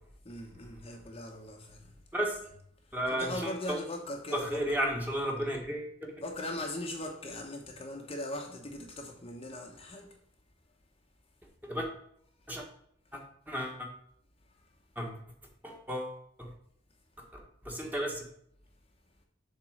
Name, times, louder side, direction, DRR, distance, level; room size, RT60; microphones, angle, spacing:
voice 1, 0.2-2.0 2.8-4.6 6.2-10.2 12.4-12.5 14.4-14.7, left 1 dB, 30° left, 0.9 m, -40 dB
voice 2, 2.9-3.8 4.3-6.1 11.6-11.9 12.5-12.6 13.1-13.9 14.9-15.2 15.6-16.5 17.6-18.2, equal, 10° right, 1.5 m, -33 dB
7.1 x 3.7 x 6.3 m
head